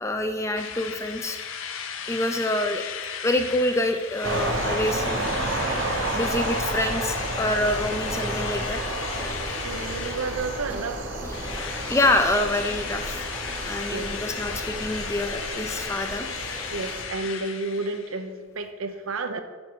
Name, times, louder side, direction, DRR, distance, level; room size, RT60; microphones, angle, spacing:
voice 1, 0.0-1.4 2.1-3.0 3.2-5.3 5.8-8.8 11.3-11.4 11.9-13.2 13.6-16.4, left 1 dB, 15° left, 6 dB, 0.4 m, -26 dB
Drill, 0.6-10.9 11.3-18.2, left 7 dB, 75° left, 0.5 m, -35 dB
sound 1, 4.2-17.0, right 2 dB, 60° right, 1.0 m, -31 dB
Engine, 6.1-16.1, equal, 10° right, 0.8 m, -39 dB
voice 2, 9.6-11.0 13.9-14.1 16.7-19.4, right 3 dB, 85° right, 8 dB, 0.6 m, -31 dB
5.7 x 5.2 x 6.1 m, 1.5 s
head